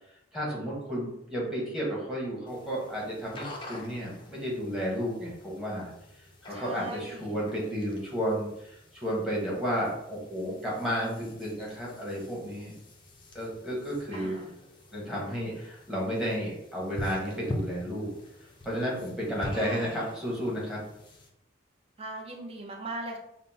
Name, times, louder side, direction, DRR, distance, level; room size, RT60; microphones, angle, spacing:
voice 1, 0.3-5.9 6.4-12.7 13.3-14.4 14.9-18.1 18.6-20.8, equal, 5° right, -6 dB, 1.1 m, -32 dB
sound 1, 2.5-21.3, left 1 dB, 25° left, 0.5 m, -45 dB
voice 2, 6.5-7.4 14.1-14.5 19.5-20.0 22.0-23.2, right 2 dB, 30° right, 1 dB, 0.6 m, -39 dB
5.2 x 2.1 x 2.7 m, 0.79 s
head